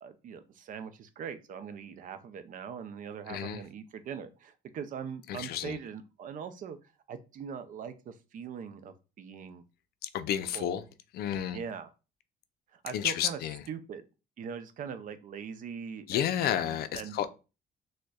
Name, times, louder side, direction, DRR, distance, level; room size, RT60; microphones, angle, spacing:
voice 1, 0.0-6.8 7.1-9.6 10.5-10.8 11.5-11.9 12.7-13.4 13.7-14.1 14.4-17.3, right 7 dB, 50° right, 0.5 m, -41 dB
voice 2, 3.3-3.6 5.3-5.8 10.0-10.8 11.1-11.6 12.9-13.6 16.1-17.3, left 10 dB, 65° left, 0.4 m, -31 dB
6.1 x 2.2 x 2.2 m
cardioid pair, 110°, 17 cm